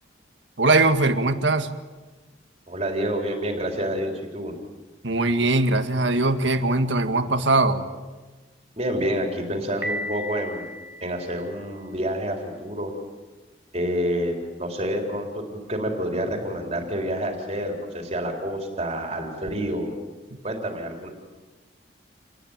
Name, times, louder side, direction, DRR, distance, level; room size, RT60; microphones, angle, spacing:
voice 1, 0.6-1.7 5.0-7.9, right 2 dB, 75° right, 8 dB, 1.8 m, -21 dB
voice 2, 2.7-4.5 8.8-10.6 11.0-12.9 13.7-15.4 15.7-19.9 20.4-21.1, equal, 35° right, 2 dB, 3.9 m, -28 dB
Piano, 9.8-11.8, equal, 10° right, 2.6 m, -34 dB
27.5 x 20.0 x 9.0 m, 1.2 s
head